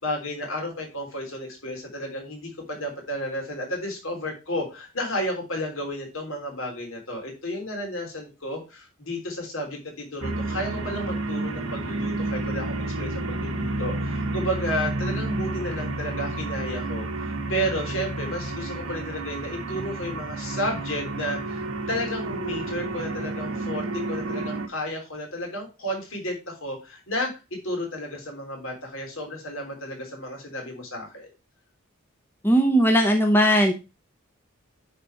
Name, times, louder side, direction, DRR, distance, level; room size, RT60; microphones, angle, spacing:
voice 1, 0.0-31.3, equal, 70° left, 0 dB, 3.5 m, -32 dB
sound 1, 10.2-24.7, right 2 dB, 85° right, 1.3 m, -30 dB
voice 2, 32.4-33.7, equal, 10° left, 4 dB, 0.8 m, -18 dB
10.0 x 4.2 x 4.5 m, 0.28 s
head